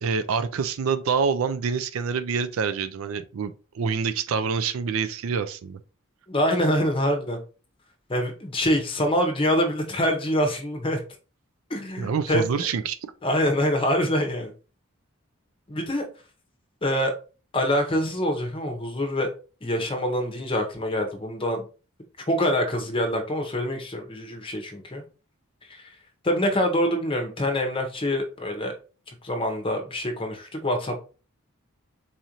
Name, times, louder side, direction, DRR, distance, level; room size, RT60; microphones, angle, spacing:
voice 1, 0.0-5.8 12.0-13.0, right 5 dB, 70° right, 0.4 m, -26 dB
voice 2, 6.3-7.4 8.1-11.0 11.7-12.4 13.2-14.5 15.7-16.0 16.8-17.1 17.5-19.3 19.6-21.7 22.3-25.0 25.7-25.9 26.2-28.7 29.2-31.0, equal, 25° left, 0.8 m, -25 dB
4.1 x 2.5 x 2.9 m
head